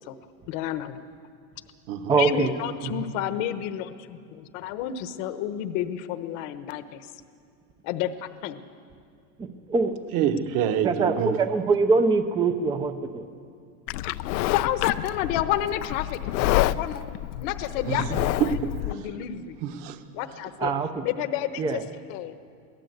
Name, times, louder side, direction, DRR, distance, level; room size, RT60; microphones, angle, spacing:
voice 1, 0.5-1.0 2.2-7.1 7.8-8.6 14.4-17.1 17.4-18.5 18.8-19.6 20.1-20.7 21.0-21.8 22.1-22.3, left 11 dB, 50° left, 11 dB, 1.1 m, -30 dB
voice 2, 2.1-2.5 2.8-3.0 9.4-9.9 10.8-13.2 18.1-18.4 20.6-21.0 21.6-21.8, right 4 dB, 10° right, 9 dB, 0.5 m, -24 dB
voice 3, 10.1-11.4 17.9-18.1 18.4-18.6 18.9-19.1 19.6-20.0, right 9 dB, 40° right, 8 dB, 1.4 m, -26 dB
Livestock farm animals working animals, 13.9-18.9, left 15 dB, 85° left, 0.7 m, -28 dB
23.5 x 17.0 x 8.0 m, 2.3 s
supercardioid pair, 160°, 50 cm